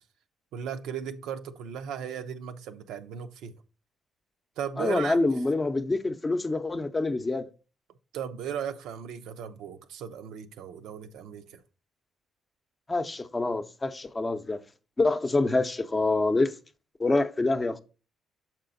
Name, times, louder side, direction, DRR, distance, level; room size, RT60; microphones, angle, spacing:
voice 1, 0.5-3.5 4.6-5.2 8.1-11.6, right 8 dB, 85° right, 0.5 m, -36 dB
voice 2, 4.8-7.5 12.9-14.6 15.0-16.5 17.0-17.8, left 2 dB, 25° left, 0.6 m, -26 dB
6.8 x 4.3 x 3.9 m
cardioid pair, 90°, 0 cm